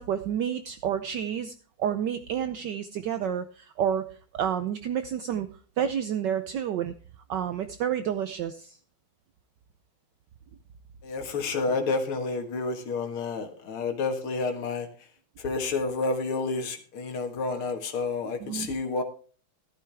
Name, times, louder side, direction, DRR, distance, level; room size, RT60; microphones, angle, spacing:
voice 1, 0.0-4.1 4.4-5.5 5.8-6.9 7.3-8.8 18.4-18.7, right 9 dB, 70° right, 10 dB, 1.2 m, -29 dB
voice 2, 11.0-14.9 15.4-19.0, left 3 dB, 85° left, 5 dB, 2.5 m, -30 dB
13.0 x 12.0 x 3.4 m, 0.40 s
omnidirectional pair, 2.3 m